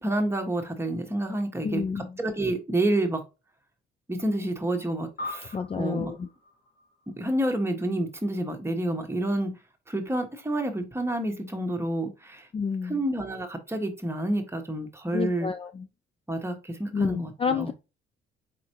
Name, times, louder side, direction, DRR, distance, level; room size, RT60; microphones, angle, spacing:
voice 1, 0.0-3.2 4.1-6.1 7.1-9.6 9.9-12.5 12.8-15.5 16.3-17.7, right 1 dB, 10° right, 1.2 m, -29 dB
voice 2, 1.6-2.1 5.5-6.3 12.5-13.0 15.1-15.9 16.9-17.7, left 6 dB, 30° left, 0.4 m, -29 dB
sound 1, 5.2-7.9, left 2 dB, 45° left, 1.5 m, -42 dB
4.5 x 3.9 x 2.9 m
cardioid pair, 90°, 20 cm